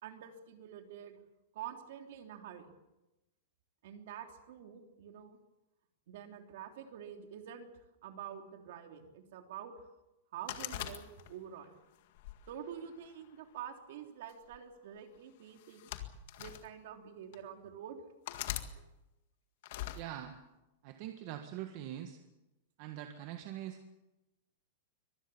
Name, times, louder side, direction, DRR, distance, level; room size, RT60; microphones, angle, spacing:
voice 1, 0.0-1.2 1.5-2.6 3.8-5.4 6.1-7.7 8.0-9.7 10.3-11.8 12.5-15.9 16.4-18.0, right 9 dB, 55° right, 5 dB, 3.2 m, -47 dB
sound 1, 10.5-11.5 12.2-13.3 14.3-14.6 15.6-16.6 17.3-17.4 18.3-18.7 19.6-20.0, left 13 dB, 50° left, 1.9 m, -41 dB
voice 2, 19.9-20.3 20.8-22.2 22.8-23.9, right 11 dB, 35° right, 6 dB, 1.5 m, -43 dB
24.5 x 19.5 x 7.2 m, 0.98 s
supercardioid pair, 175°, 0 cm